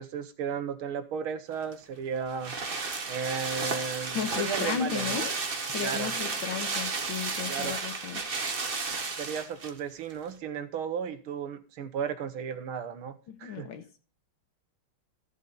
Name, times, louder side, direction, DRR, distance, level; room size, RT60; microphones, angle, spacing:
voice 1, 0.0-2.6 3.1-5.2 5.8-6.2 7.5-7.8 9.2-13.1 13.4-13.7, right 7 dB, 75° right, 11 dB, 1.9 m, -34 dB
sound 1, 1.6-9.8 10.1-10.2, right 4 dB, 35° right, 1.1 m, -33 dB
voice 2, 4.1-5.3 5.7-8.2 13.3-14.0, left 8 dB, 65° left, 8 dB, 2.0 m, -34 dB
14.0 x 7.6 x 3.9 m, 0.36 s
omnidirectional pair, 2.4 m